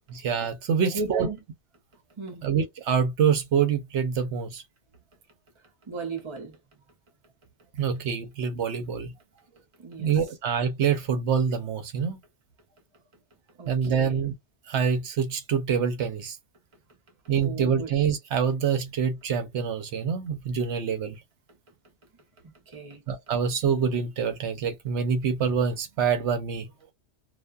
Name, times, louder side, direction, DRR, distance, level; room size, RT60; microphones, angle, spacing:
voice 1, 0.1-1.3 2.4-4.6 7.8-9.1 10.0-12.2 13.7-14.3 14.7-16.4 17.3-21.2 23.1-26.7, right 7 dB, 80° right, 0.9 m, -26 dB
voice 2, 0.8-1.4 2.2-2.5 5.8-6.6 9.5-10.1 13.6-14.3 17.3-17.9 22.7-23.0, right 3 dB, 30° right, 0.8 m, -36 dB
2.4 x 2.2 x 2.4 m
omnidirectional pair, 1.2 m